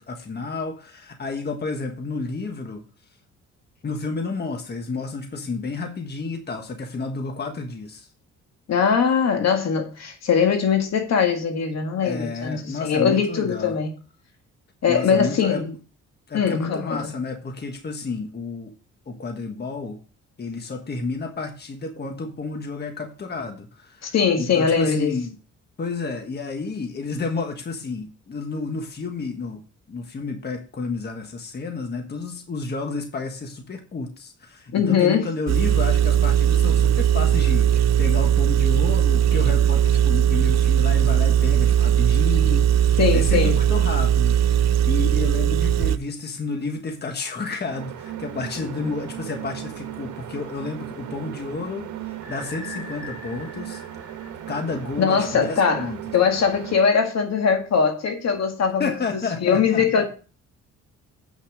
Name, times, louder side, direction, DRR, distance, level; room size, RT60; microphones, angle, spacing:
voice 1, 0.0-2.8 3.8-8.1 12.0-13.8 14.9-15.8 16.3-18.7 19.1-20.0 20.4-25.3 25.8-53.8 54.5-56.0 58.8-60.1, left 3 dB, 35° left, 1.5 m, -31 dB
voice 2, 8.7-13.9 14.8-15.7 16.3-17.0 24.0-25.1 34.7-35.2 43.0-43.6 48.8-48.9 55.0-58.9 59.4-60.1, left 6 dB, 60° left, 1.9 m, -21 dB
Engine, 35.5-46.0, right 10 dB, 60° right, 0.6 m, -19 dB
sound 1, 47.6-56.9, right 11 dB, 75° right, 1.5 m, -37 dB
sound 2, 52.2-55.1, left 3 dB, 10° right, 4.1 m, -41 dB
8.5 x 6.0 x 4.9 m
cardioid pair, 90°, 30 cm